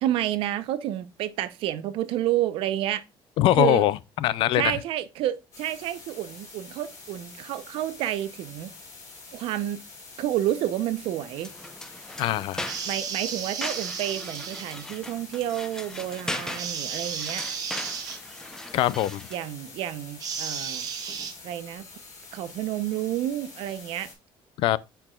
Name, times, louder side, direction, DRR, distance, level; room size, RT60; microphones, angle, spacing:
voice 1, 0.0-3.0 3.6-3.9 4.5-8.7 9.3-9.8 10.2-11.5 12.8-17.5 19.3-20.9 21.4-21.9 22.3-24.1, right 13 dB, 70° right, 0.7 m, -29 dB
voice 2, 3.4-4.8 12.2-12.7 18.7-19.2 24.6-24.8, left 14 dB, 60° left, 0.4 m, -22 dB
sound 1, 5.5-24.1, left 3 dB, 35° left, 2.9 m, -46 dB
sound 2, 11.4-19.5, left 1 dB, 5° left, 0.6 m, -39 dB
sound 3, 12.6-14.9 16.6-18.2 20.2-21.3, right 6 dB, 40° right, 1.2 m, -33 dB
8.9 x 4.7 x 2.3 m
cardioid pair, 165°, 10 cm